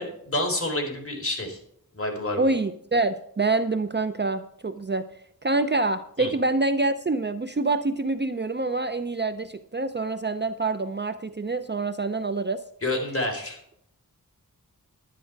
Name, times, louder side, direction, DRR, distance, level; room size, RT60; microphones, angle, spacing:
voice 1, 0.0-1.6 1.9-2.5 6.2-6.3 12.8-13.6, left 1 dB, 40° left, 1 dB, 3.8 m, -28 dB
voice 2, 2.4-5.0 5.4-12.6, right 3 dB, 30° right, 10 dB, 0.6 m, -26 dB
11.0 x 10.5 x 4.7 m, 0.69 s
wide cardioid pair, 75°, 36 cm